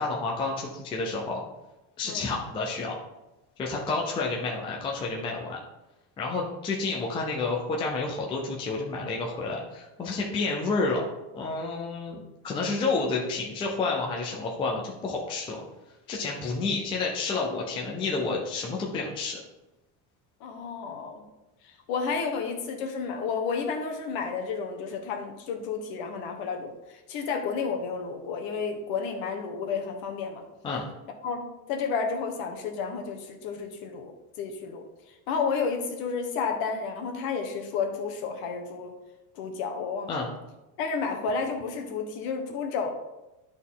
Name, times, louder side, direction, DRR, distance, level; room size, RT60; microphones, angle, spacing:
voice 1, 0.0-1.4 2.0-3.0 3.6-5.6 6.2-11.0 11.3-15.6 16.1-19.4 30.6-30.8 40.1-40.3, left 3 dB, 10° left, -2 dB, 0.4 m, -30 dB
voice 2, 20.4-21.2 21.6-30.4 31.2-34.1 34.4-34.8 35.3-38.9 39.4-40.3 40.8-42.9, left 5 dB, 50° left, 5 dB, 1.2 m, -31 dB
10.5 x 4.1 x 3.7 m, 1.0 s
cardioid pair, 170°, 46 cm